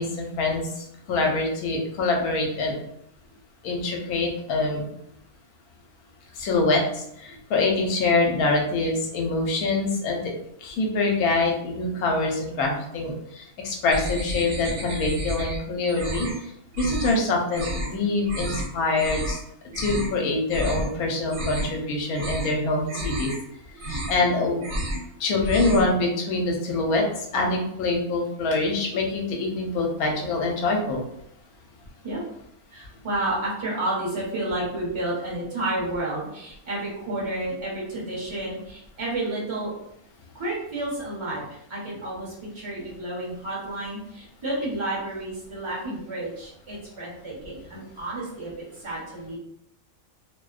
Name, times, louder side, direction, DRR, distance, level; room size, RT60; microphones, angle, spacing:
voice 1, 0.0-2.7 3.6-4.9 6.4-10.3 10.6-16.5 16.8-19.4 19.8-23.3 23.8-24.6 25.2-31.0, left 3 dB, 85° left, 1 dB, 1.1 m, -25 dB
sound 1, 13.9-15.6 15.9-16.4 16.7-17.2 17.5-17.9 18.3-18.7 19.0-19.4 19.7-20.1 20.5-20.9 21.2-21.8 22.1-22.5 22.9-23.4 23.7-24.3 24.6-25.1 25.3-25.9, right 1 dB, 70° right, 1.0 m, -31 dB
voice 2, 32.7-39.7 40.3-49.4, right 2 dB, 25° right, -6 dB, 0.7 m, -31 dB
2.5 x 2.1 x 2.3 m, 0.75 s
omnidirectional pair, 1.6 m